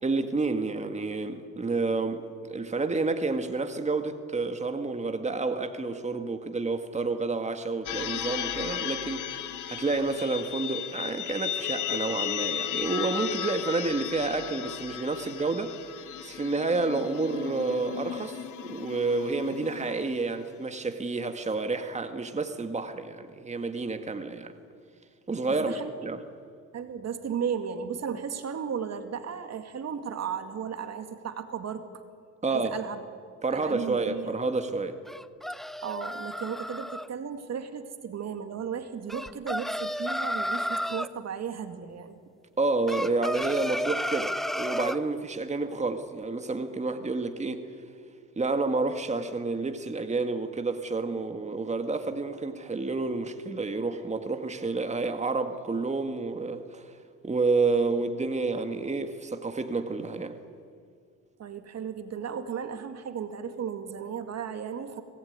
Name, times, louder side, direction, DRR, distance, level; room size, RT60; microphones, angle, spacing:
voice 1, 0.0-9.4 9.7-15.8 16.2-24.5 25.3-26.2 32.4-32.7 33.4-35.0 42.6-47.6 48.4-56.9 57.2-60.4, right 3 dB, 25° right, 7 dB, 1.9 m, -29 dB
sound 1, 7.9-20.4, left 10 dB, 75° left, 1.6 m, -35 dB
voice 2, 25.5-25.9 26.7-31.9 32.5-33.0 33.5-34.4 35.8-42.2 61.4-65.0, right 7 dB, 60° right, 8 dB, 2.2 m, -35 dB
sound 2, 35.1-37.1 39.1-41.1 42.9-45.0, equal, ahead, 0.7 m, -32 dB
25.0 x 18.5 x 9.7 m, 2.1 s
cardioid pair, 90°, 30 cm